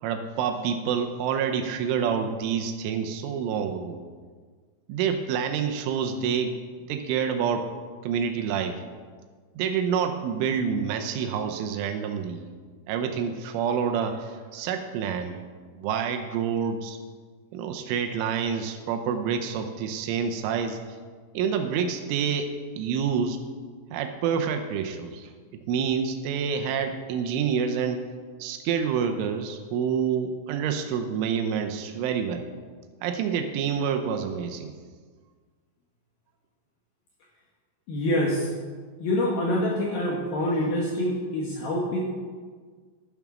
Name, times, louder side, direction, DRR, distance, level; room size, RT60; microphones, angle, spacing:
voice 1, 0.0-4.0 4.9-6.6 6.9-7.7 8.0-8.8 9.6-12.5 12.9-15.4 15.7-17.0 17.5-20.8 21.3-23.4 23.9-25.4 25.7-28.0 28.4-32.4 33.0-34.7, right 7 dB, 80° right, 6 dB, 3.2 m, -27 dB
voice 2, 37.9-38.5 39.0-42.0, left 1 dB, 70° left, -2 dB, 2.4 m, -26 dB
12.0 x 7.2 x 6.1 m, 1.6 s
omnidirectional pair, 5.8 m